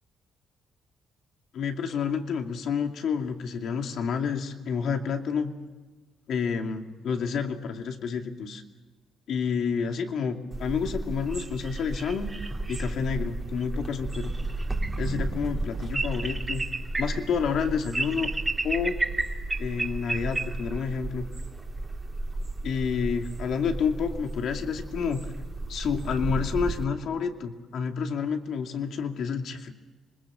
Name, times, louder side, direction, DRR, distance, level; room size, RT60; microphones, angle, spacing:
voice 1, 1.5-5.5 6.3-8.6 9.3-12.3 12.7-14.3 15.0-16.6 17.0-18.3 18.6-19.0 19.6-21.3 22.6-25.3 25.7-29.7, left 6 dB, 70° left, 4 dB, 2.6 m, -29 dB
sound 1, 10.5-26.8, right 2 dB, 20° right, 2.9 m, -32 dB
26.0 x 21.5 x 7.6 m, 1.2 s
cardioid pair, 90°, 0 cm